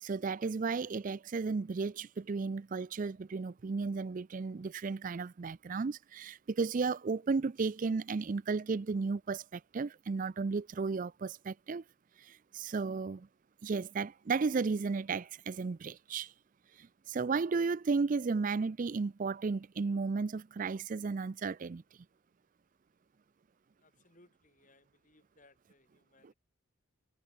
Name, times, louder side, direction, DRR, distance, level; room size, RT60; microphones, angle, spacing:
voice 1, 0.0-11.8 12.2-13.3 13.6-16.3 16.8-21.8 26.2-26.3, right 4 dB, 40° right, 0.4 m, -34 dB
voice 2, 23.8-26.3, left 2 dB, 40° left, 4.1 m, -66 dB
head